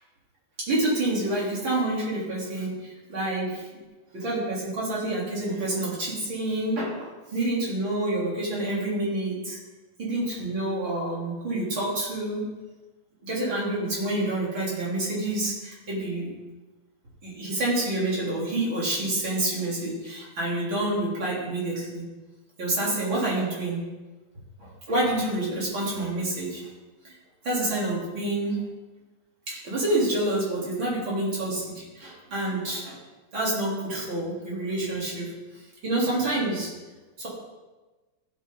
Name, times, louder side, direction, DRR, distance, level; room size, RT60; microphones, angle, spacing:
voice 1, 0.7-3.8 4.1-9.6 10.0-12.5 13.2-16.3 17.2-22.0 22.6-23.8 24.6-26.6 27.0-27.1 27.4-28.6 29.5-33.0 33.3-35.3 35.8-36.7 37.2-37.3, right 1 dB, 35° right, -6 dB, 4.0 m, -28 dB
15.0 x 8.5 x 3.9 m, 1.2 s
omnidirectional pair, 4.1 m